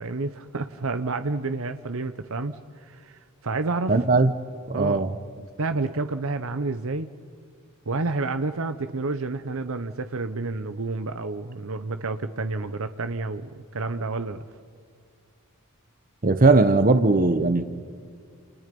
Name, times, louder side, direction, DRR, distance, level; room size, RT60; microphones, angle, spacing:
voice 1, 0.0-4.0 4.7-5.1 5.4-7.1 7.9-14.4, right 3 dB, 70° right, 10 dB, 1.0 m, -30 dB
voice 2, 3.9-4.3 4.7-5.1 16.2-17.6, right 3 dB, 40° right, 10 dB, 1.0 m, -19 dB
30.0 x 29.0 x 5.4 m, 2.1 s
head